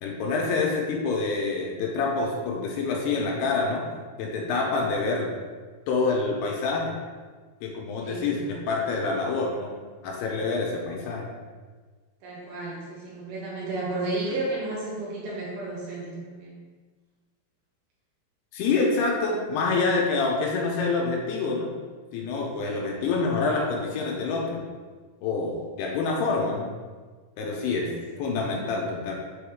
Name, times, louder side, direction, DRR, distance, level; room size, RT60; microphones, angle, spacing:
voice 1, 0.0-3.9 4.2-5.4 5.9-7.0 7.6-11.3 18.5-21.7 22.1-24.6 25.2-26.7 27.4-27.9 28.2-29.1, left 3 dB, 80° left, -1 dB, 2.7 m, -27 dB
voice 2, 8.0-8.6 12.2-16.5 22.6-22.9 26.0-26.2 27.6-28.2, right 2 dB, 70° right, -5 dB, 2.9 m, -33 dB
7.0 x 3.9 x 3.5 m, 1.4 s
omnidirectional pair, 4.9 m